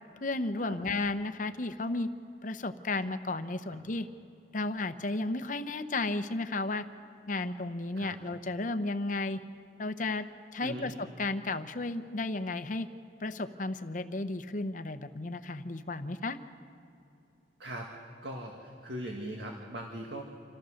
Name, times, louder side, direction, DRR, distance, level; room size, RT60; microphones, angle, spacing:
voice 1, 0.2-2.1 2.4-4.1 4.5-6.8 7.3-9.4 9.8-10.3 10.5-12.9 13.2-16.4, left 2 dB, 45° left, 10 dB, 0.8 m, -33 dB
voice 2, 10.6-10.9 17.6-17.9 18.2-20.2, right 1 dB, 80° right, 1 dB, 1.9 m, -40 dB
27.5 x 14.5 x 6.5 m, 2.6 s
head